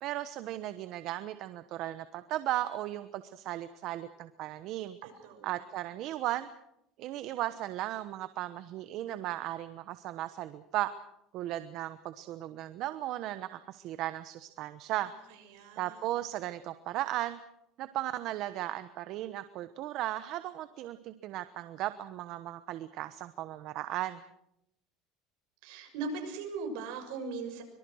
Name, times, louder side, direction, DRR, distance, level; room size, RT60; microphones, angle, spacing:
voice 1, 0.0-5.0 5.4-6.5 7.0-10.9 11.3-15.1 15.8-17.4 17.8-24.2, right 14 dB, 55° right, 12 dB, 1.0 m, -36 dB
voice 2, 5.0-5.6 15.0-16.1 25.6-27.6, right 4 dB, 70° right, 5 dB, 6.6 m, -40 dB
24.5 x 23.0 x 6.4 m, 0.81 s
cardioid pair, 140°, 0 cm